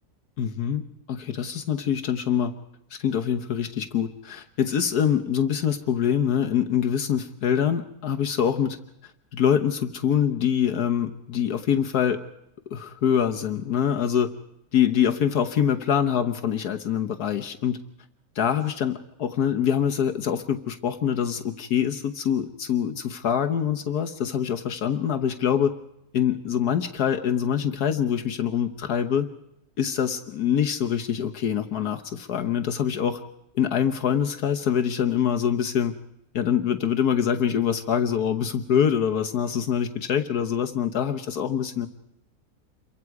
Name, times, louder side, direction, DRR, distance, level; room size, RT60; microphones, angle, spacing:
voice 1, 0.4-0.8 1.1-2.5 3.0-8.8 9.3-12.2 12.7-14.3 14.7-17.8 18.3-25.7 26.1-29.3 29.8-33.2 33.5-35.9 36.3-41.9, left 8 dB, 75° left, 6 dB, 1.6 m, -24 dB
28.0 x 23.5 x 4.8 m, 0.82 s
omnidirectional pair, 1.7 m